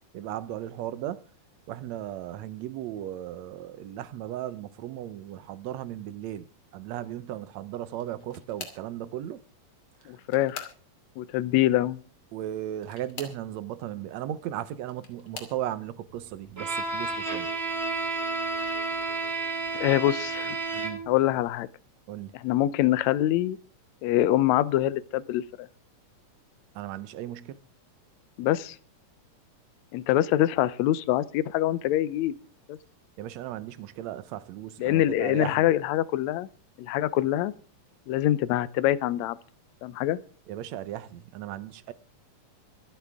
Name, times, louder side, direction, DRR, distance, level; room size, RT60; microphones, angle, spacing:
voice 1, 0.1-1.2 1.7-6.5 6.7-9.4 12.3-17.5 20.7-21.0 22.1-22.3 26.8-27.6 33.2-35.7 40.5-41.9, right 12 dB, 70° right, 2.0 m, -36 dB
sound 1, 7.9-8.9 9.9-11.2 12.8-13.5 14.5-15.6 16.4-16.7 17.1-17.3 18.6-18.7, left 4 dB, 45° left, 3.2 m, -45 dB
voice 2, 10.1-10.7 11.2-12.0 19.7-20.6 21.1-21.7 22.3-23.6 24.0-25.7 28.4-28.8 29.9-32.4 32.7-32.8 34.8-36.5 36.8-37.5 38.1-39.4 39.8-40.2, left 13 dB, 75° left, 1.9 m, -25 dB
Bowed string instrument, 16.6-21.2, right 3 dB, 20° right, 2.7 m, -31 dB
25.5 x 8.7 x 3.6 m
omnidirectional pair, 3.5 m